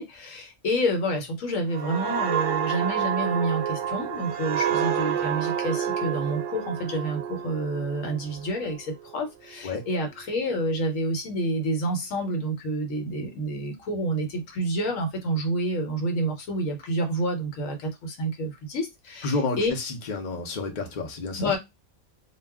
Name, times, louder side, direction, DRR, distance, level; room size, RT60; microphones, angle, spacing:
voice 1, 0.0-19.7 21.4-21.6, right 1 dB, 75° left, 1.1 m, -28 dB
sound 1, 1.7-9.2 9.6-9.8, right 8 dB, 70° right, 0.9 m, -29 dB
voice 2, 19.2-21.5, left 3 dB, 45° left, 0.7 m, -30 dB
2.3 x 2.2 x 3.4 m
omnidirectional pair, 1.4 m